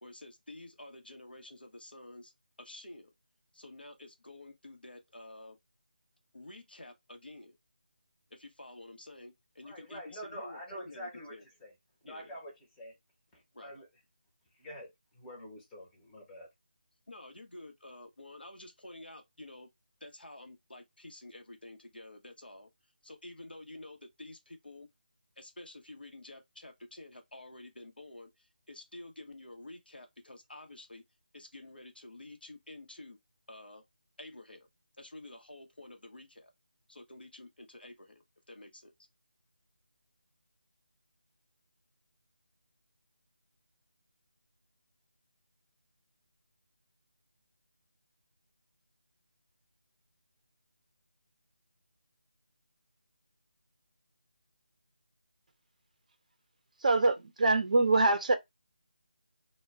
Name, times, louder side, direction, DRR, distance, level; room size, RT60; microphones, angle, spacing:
voice 1, 0.0-2.3 2.6-3.1 3.5-5.6 6.3-7.6 8.3-11.4 12.0-12.4 13.5-13.7 17.1-19.7 20.0-22.7 23.0-24.9 25.4-31.0 31.3-33.2 33.5-33.8 34.2-34.7 35.0-36.5 36.9-38.9, left 2 dB, 80° left, 0.8 m, -50 dB
voice 2, 9.6-11.3 11.6-11.7 12.0-12.9 13.3-13.9 14.6-16.5, equal, 10° left, 0.7 m, -46 dB
voice 3, 56.8-58.3, right 2 dB, 50° right, 0.5 m, -24 dB
2.2 x 2.1 x 3.4 m
figure-of-eight pair, 160°, 5 cm